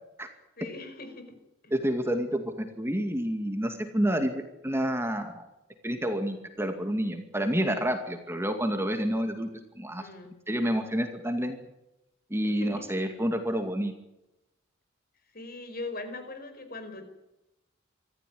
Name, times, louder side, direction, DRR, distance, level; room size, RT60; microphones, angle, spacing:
voice 1, 0.6-1.4 1.6-1.7 10.0-10.3 12.4-12.8 15.3-17.1, left 2 dB, 45° left, 8 dB, 4.8 m, -40 dB
voice 2, 1.7-5.4 5.8-9.5 9.8-10.1 10.5-11.6 12.3-13.9, equal, 10° right, 6 dB, 2.3 m, -29 dB
25.5 x 14.5 x 9.4 m, 0.94 s
head